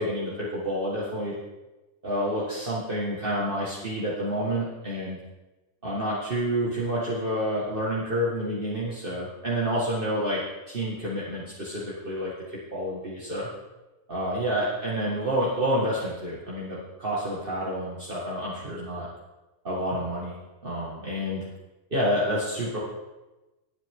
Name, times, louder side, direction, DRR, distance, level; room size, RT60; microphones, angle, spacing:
voice 1, 0.0-1.4 2.0-5.2 5.8-10.4 10.7-13.5 14.1-19.1 19.6-20.3 20.6-21.5 21.9-22.8, equal, 25° right, -7 dB, 1.4 m, -29 dB
20.0 x 9.0 x 3.8 m, 1.1 s
omnidirectional pair, 3.7 m